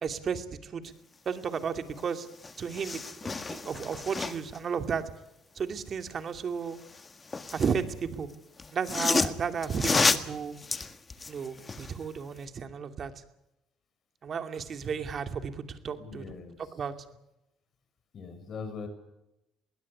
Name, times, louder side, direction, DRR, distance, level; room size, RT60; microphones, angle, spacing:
voice 1, 0.0-0.9 1.3-2.3 2.6-3.1 3.5-5.0 5.6-6.8 7.5-8.3 8.7-10.5 11.3-13.1 14.2-16.4 16.8-16.9, right 6 dB, 50° right, 8 dB, 2.5 m, -33 dB
sound 1, 2.0-2.1 2.3-4.6 6.7-7.8 8.6-12.0 12.4-12.5, left 4 dB, 30° left, 1.7 m, -30 dB
voice 2, 15.9-16.7 18.1-18.9, left 5 dB, 50° left, 9 dB, 6.3 m, -41 dB
21.5 x 17.0 x 9.9 m, 0.89 s
supercardioid pair, 80°, 0 cm